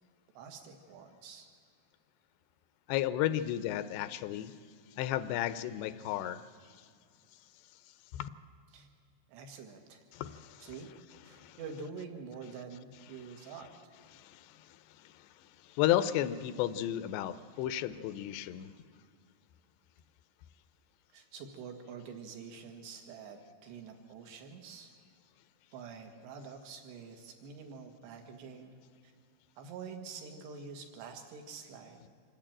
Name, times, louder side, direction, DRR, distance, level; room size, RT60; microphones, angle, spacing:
voice 1, 0.4-1.5 8.7-8.9 9.3-10.0 10.6-10.9 11.2-13.9 21.1-24.9 25.7-28.8 29.0-29.1 29.6-32.1, right 5 dB, 75° right, 4 dB, 3.8 m, -47 dB
voice 2, 2.9-4.5 5.0-6.4 6.7-6.8 8.1-8.3 10.1-10.7 11.3-11.6 14.1-18.7, left 12 dB, 85° left, 13 dB, 2.8 m, -33 dB
26.0 x 11.0 x 8.9 m, 2.1 s
omnidirectional pair, 5.0 m